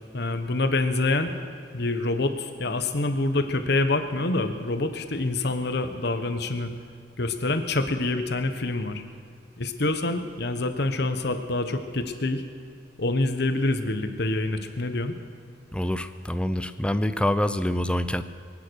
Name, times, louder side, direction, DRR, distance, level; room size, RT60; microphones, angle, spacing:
voice 1, 0.1-1.3 1.7-6.7 7.2-9.0 9.6-12.4 13.0-15.2, left 2 dB, 65° left, 8 dB, 1.2 m, -26 dB
voice 2, 15.7-18.2, left 1 dB, 5° left, 11 dB, 0.5 m, -26 dB
23.5 x 9.6 x 6.4 m, 2.3 s
head